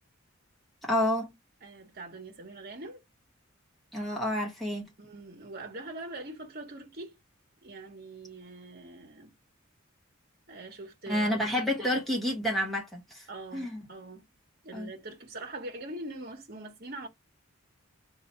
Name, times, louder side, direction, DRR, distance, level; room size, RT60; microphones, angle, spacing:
voice 1, 0.8-1.3 3.9-4.8 11.1-13.3 13.5-13.8 14.7-14.9, left 1 dB, ahead, 1.2 m, -29 dB
voice 2, 1.6-3.0 5.0-7.2 7.6-9.3 10.5-11.7 13.3-14.3 14.6-17.1, right 2 dB, 45° right, 1.2 m, -43 dB
3.0 x 2.7 x 4.3 m
head